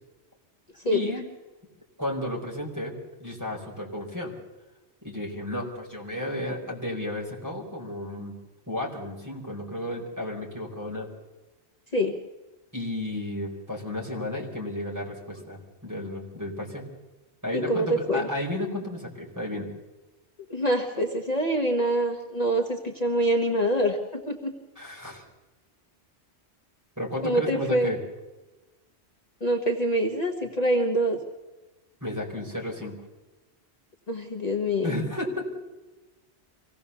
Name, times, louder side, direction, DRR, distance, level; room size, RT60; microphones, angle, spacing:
voice 1, 0.9-1.2 2.0-2.9 3.2-4.3 5.0-8.3 8.7-11.1 12.7-16.8 17.4-19.7 24.8-25.2 27.0-28.0 32.0-32.9 34.8-35.4, left 1 dB, 15° right, -2 dB, 4.6 m, -33 dB
voice 2, 17.5-18.3 20.5-24.5 27.2-27.9 29.4-31.2 34.1-34.9, right 1 dB, 35° left, 2 dB, 1.5 m, -25 dB
25.0 x 17.0 x 7.0 m, 1.1 s
omnidirectional pair, 1.1 m